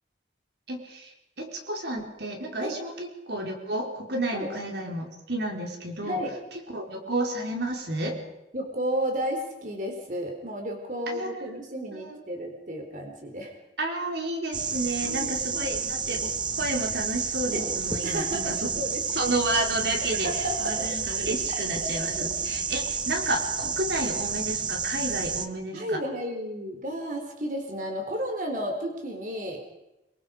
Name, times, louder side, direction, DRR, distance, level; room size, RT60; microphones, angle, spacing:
voice 1, 0.7-6.2 6.5-8.2 11.1-11.6 11.9-12.2 13.8-16.3 16.6-18.8 19.1-20.3 20.6-26.0, right 1 dB, 70° right, 1 dB, 4.5 m, -31 dB
voice 2, 8.5-13.5 15.0-15.7 18.0-19.0 19.9-21.0 21.5-21.9 22.2-22.5 25.7-29.6, equal, 45° right, 2 dB, 3.9 m, -33 dB
sound 1, 14.5-25.5, right 5 dB, 25° right, 1.2 m, -30 dB
26.0 x 24.0 x 5.2 m, 0.93 s
head